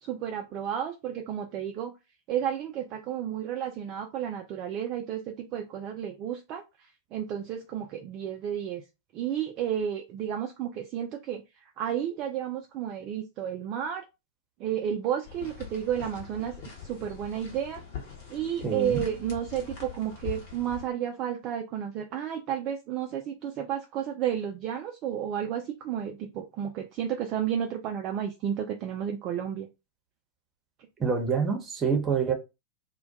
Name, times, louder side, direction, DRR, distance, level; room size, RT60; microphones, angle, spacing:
voice 1, 0.0-1.9 2.3-6.6 7.1-8.8 9.1-11.4 11.8-14.0 14.6-16.6 16.8-17.8 18.3-29.7, right 9 dB, 40° right, 0.3 m, -32 dB
sound 1, 15.2-20.8, left 8 dB, 50° left, 0.9 m, -42 dB
voice 2, 18.6-19.0 31.0-32.3, right 6 dB, 20° right, 0.7 m, -26 dB
2.1 x 2.1 x 2.7 m
figure-of-eight pair, 90°, 0 cm